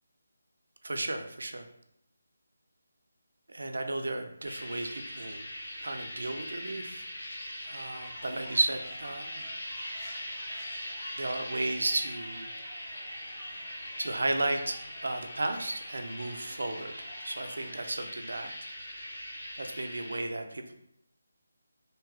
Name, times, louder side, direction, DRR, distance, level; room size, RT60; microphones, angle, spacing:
voice 1, 0.8-1.6 3.5-5.5 5.8-7.1 7.6-9.5 11.2-12.5 14.0-16.9 17.2-18.5 19.6-20.7, right 2 dB, 75° right, 6 dB, 0.4 m, -34 dB
sound 1, 4.4-20.2, equal, 80° left, 1.5 m, -41 dB
Squeak, 7.4-11.4, equal, 5° left, 0.5 m, -55 dB
sound 2, 8.1-17.8, equal, 40° left, 1.2 m, -52 dB
2.8 x 2.3 x 2.9 m, 0.74 s
figure-of-eight pair, 165°, 0 cm